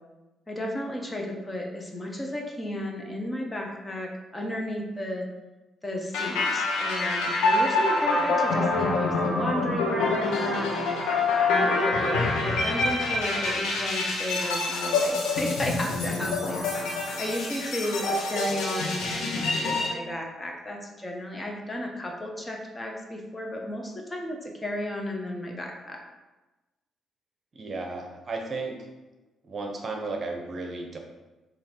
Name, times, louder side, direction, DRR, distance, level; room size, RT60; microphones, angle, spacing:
voice 1, 0.5-5.3 5.8-11.0 11.5-26.0, left 1 dB, 20° left, 1 dB, 1.1 m, -33 dB
sound 1, 6.1-19.9, left 3 dB, 90° left, 1.2 m, -26 dB
voice 2, 27.5-28.9 29.4-31.0, right 3 dB, 40° right, 2 dB, 1.0 m, -34 dB
6.9 x 3.0 x 4.5 m, 1.1 s
cardioid pair, 90°, 0 cm